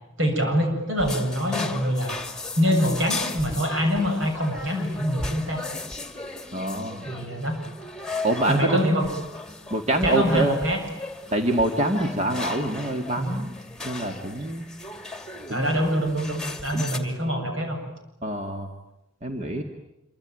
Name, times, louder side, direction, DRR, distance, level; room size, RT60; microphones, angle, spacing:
voice 1, 0.2-2.2 2.6-5.6 7.0-7.5 8.5-9.1 10.0-10.8 13.2-13.4 15.5-17.8, equal, 70° right, 3 dB, 7.4 m, -24 dB
sound 1, 1.0-17.0, left 3 dB, 5° left, 2.6 m, -36 dB
voice 2, 6.5-7.1 8.2-8.9 9.7-10.6 11.3-13.5 13.8-14.7 15.5-15.8 16.7-17.0 18.2-18.7 19.2-19.6, right 1 dB, 35° right, 3 dB, 2.2 m, -25 dB
27.0 x 24.5 x 9.1 m, 0.88 s
head